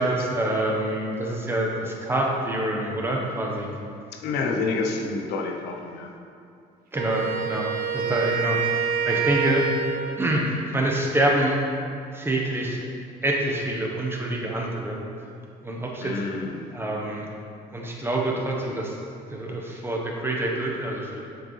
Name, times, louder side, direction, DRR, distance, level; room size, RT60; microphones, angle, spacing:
voice 1, 0.0-3.7 6.9-7.7 7.9-9.7 10.2-11.6 12.1-12.8 13.2-15.0 15.6-16.2 16.7-17.3 17.7-19.0 19.3-21.2, right 1 dB, 15° right, -1 dB, 1.0 m, -26 dB
voice 2, 4.1-6.1 16.0-16.7, left 3 dB, 75° left, 2 dB, 0.7 m, -28 dB
Wind instrument woodwind instrument, 6.9-10.3, right 6 dB, 60° right, 0.6 m, -27 dB
7.6 x 5.1 x 3.2 m, 2.5 s
cardioid pair, 110°, 17 cm